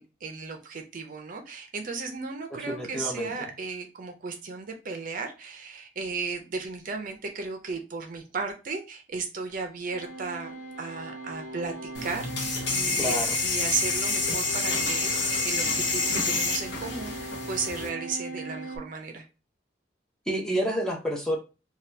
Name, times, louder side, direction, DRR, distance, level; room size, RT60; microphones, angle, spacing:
voice 1, 0.0-13.2 13.4-19.3, right 4 dB, 50° right, 4 dB, 0.5 m, -35 dB
voice 2, 2.5-3.3 13.0-13.4 20.3-21.4, equal, 5° left, -1 dB, 0.6 m, -29 dB
sound 1, 9.9-18.8, right 2 dB, 65° left, 1.1 m, -40 dB
sound 2, 11.9-17.9, left 3 dB, 85° left, 0.8 m, -28 dB
2.8 x 2.3 x 3.2 m, 0.30 s
head